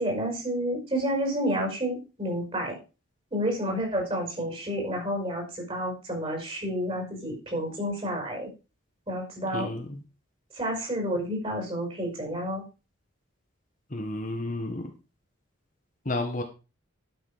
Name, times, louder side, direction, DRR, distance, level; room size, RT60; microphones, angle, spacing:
voice 1, 0.0-2.8 3.3-8.5 9.1-9.7 10.6-12.6, equal, 25° right, 1 dB, 5.6 m, -30 dB
voice 2, 9.5-10.0 13.9-14.9 16.0-16.4, left 2 dB, 40° left, 4 dB, 1.6 m, -31 dB
12.0 x 7.0 x 5.0 m, 0.32 s
head